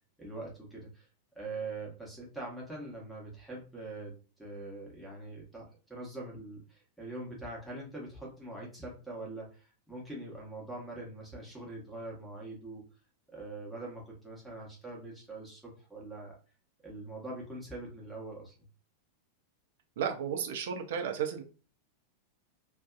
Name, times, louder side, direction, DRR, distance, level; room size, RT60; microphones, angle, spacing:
voice 1, 0.2-1.1 1.3-4.1 4.4-12.8 13.3-16.4 16.8-18.5, right 2 dB, ahead, -3 dB, 0.9 m, -43 dB
voice 2, 20.0-21.4, right 8 dB, 55° right, 4 dB, 0.5 m, -33 dB
2.6 x 2.2 x 2.3 m, 0.36 s
figure-of-eight pair, 90°, 0 cm